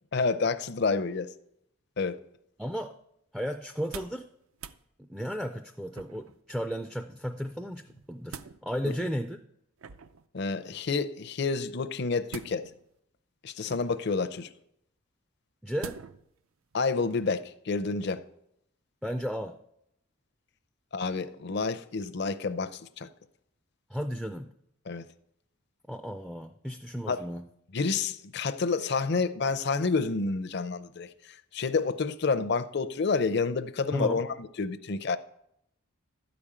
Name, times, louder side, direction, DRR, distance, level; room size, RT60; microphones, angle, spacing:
voice 1, 0.1-1.3 2.0-2.2 8.8-8.9 10.3-12.7 13.4-14.5 16.7-18.2 20.9-23.1 24.9-25.1 27.1-27.2 27.7-31.1 31.5-35.2, left 4 dB, 50° left, 0.5 m, -29 dB
voice 2, 2.6-2.9 3.3-4.3 5.0-9.4 15.6-16.0 19.0-19.6 23.9-24.5 25.9-27.5 33.9-34.2, equal, ahead, 0.3 m, -34 dB
sound 1, 3.7-4.3 4.5-4.8 5.9-6.4 7.9-8.6 9.8-10.3 12.3-12.9 13.7-14.2 15.8-16.3 16.7-16.8, right 6 dB, 75° right, 0.5 m, -44 dB
12.5 x 5.1 x 8.7 m
head